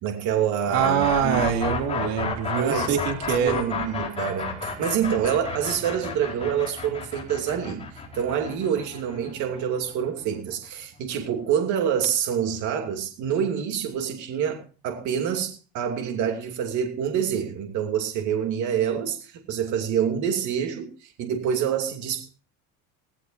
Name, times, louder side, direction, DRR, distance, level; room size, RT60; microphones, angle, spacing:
voice 1, 0.0-1.5 2.5-3.0 3.4-22.3, right 8 dB, 50° right, 2.7 m, -27 dB
sound 1, 0.7-10.5, left 5 dB, 15° left, 4.3 m, -31 dB
voice 2, 0.7-3.6, right 8 dB, 70° right, 2.8 m, -24 dB
17.5 x 16.5 x 2.6 m
cardioid pair, 165°, 37 cm